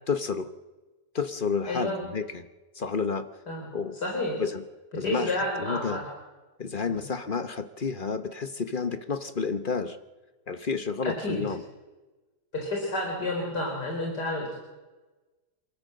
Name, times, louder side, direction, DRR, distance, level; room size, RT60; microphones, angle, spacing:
voice 1, 0.1-0.5 1.1-2.5 2.7-3.3 3.7-4.0 4.4-4.6 5.0-6.0 6.6-10.0 10.5-11.6, left 5 dB, 35° left, 10 dB, 1.0 m, -30 dB
voice 2, 1.7-2.0 3.5-3.7 3.9-4.4 5.0-6.1 6.9-7.0 11.0-11.4 12.5-14.6, left 1 dB, 90° left, -1 dB, 4.9 m, -30 dB
28.0 x 13.5 x 7.6 m, 1.2 s
omnidirectional pair, 1.7 m